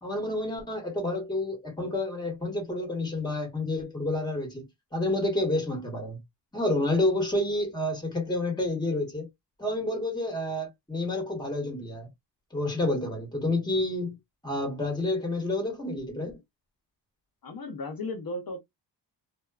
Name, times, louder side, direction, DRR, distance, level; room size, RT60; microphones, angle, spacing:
voice 1, 0.0-6.2 6.5-9.3 9.6-12.1 12.5-14.2 14.4-16.4, left 2 dB, 10° left, 1.1 m, -29 dB
voice 2, 17.4-18.6, left 2 dB, 55° left, 0.6 m, -35 dB
2.7 x 2.2 x 2.3 m
wide cardioid pair, 170°, 43 cm